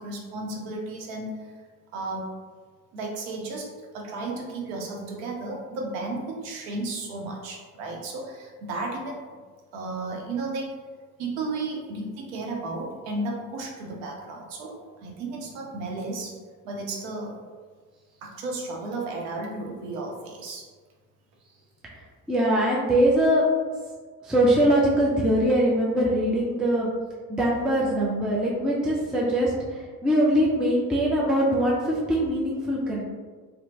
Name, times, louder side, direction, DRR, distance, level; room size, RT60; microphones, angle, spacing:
voice 1, 0.0-1.5 1.9-2.3 2.9-3.7 3.9-9.4 9.7-10.7 11.2-16.4 16.6-17.3 18.2-20.7, right 2 dB, 60° right, 0 dB, 0.7 m, -33 dB
voice 2, 22.3-23.4 24.2-26.9 27.3-33.0, right 1 dB, ahead, -4 dB, 0.3 m, -22 dB
2.8 x 2.0 x 2.7 m, 1.5 s
figure-of-eight pair, 60°, 45 cm